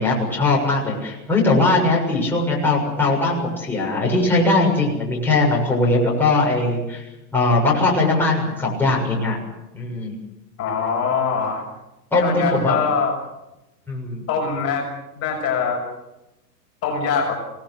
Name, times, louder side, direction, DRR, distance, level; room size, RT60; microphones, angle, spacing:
voice 1, 0.0-7.0 7.3-9.4 9.7-10.2 12.1-12.9 13.9-14.2, left 2 dB, 5° left, -4 dB, 7.1 m, -20 dB
voice 2, 10.6-11.6 12.2-13.2 14.3-14.9 15.2-15.8 16.8-17.3, left 5 dB, 30° left, 0 dB, 6.5 m, -23 dB
26.0 x 18.5 x 8.1 m, 0.95 s
hypercardioid pair, 135°, 49 cm